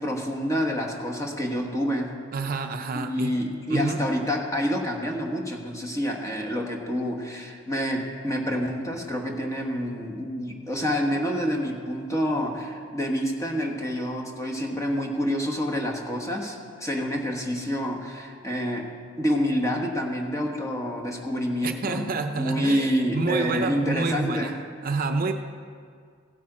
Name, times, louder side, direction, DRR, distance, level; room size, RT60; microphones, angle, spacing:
voice 1, 0.0-2.2 2.9-18.9 19.2-22.1 22.3-24.6, equal, 15° left, 1 dB, 1.3 m, -28 dB
voice 2, 2.3-3.4 3.7-4.0 21.6-24.6 24.8-25.3, right 4 dB, 45° right, 6 dB, 0.5 m, -28 dB
16.0 x 8.5 x 4.9 m, 2.1 s
head